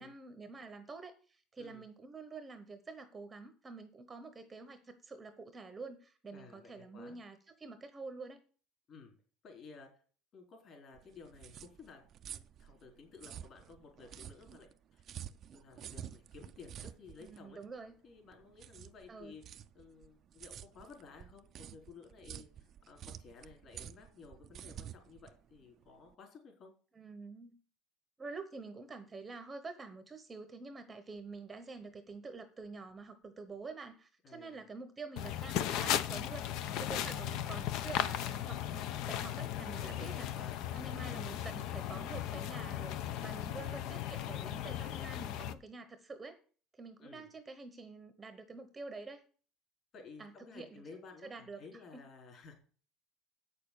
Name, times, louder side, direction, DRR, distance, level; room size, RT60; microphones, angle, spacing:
voice 1, 0.0-8.4 17.2-17.9 19.1-19.3 26.9-27.6 28.2-36.5 36.8-40.3 40.7-43.0 43.2-46.4 46.7-49.2 50.2-50.8 51.2-52.0, right 3 dB, 15° right, 9 dB, 0.9 m, -48 dB
voice 2, 6.3-7.2 8.9-9.1 9.4-9.9 10.3-15.1 15.5-17.6 18.0-26.7 34.2-34.6 39.7-40.9 43.6-43.8 47.0-47.3 49.9-52.5, left 4 dB, 35° left, 2 dB, 3.8 m, -55 dB
sound 1, 10.9-26.1, right 10 dB, 35° right, 0.5 m, -50 dB
sound 2, 35.2-45.5, left 11 dB, 55° left, 0.7 m, -37 dB
8.2 x 6.7 x 8.3 m, 0.42 s
cardioid pair, 165°, 0 cm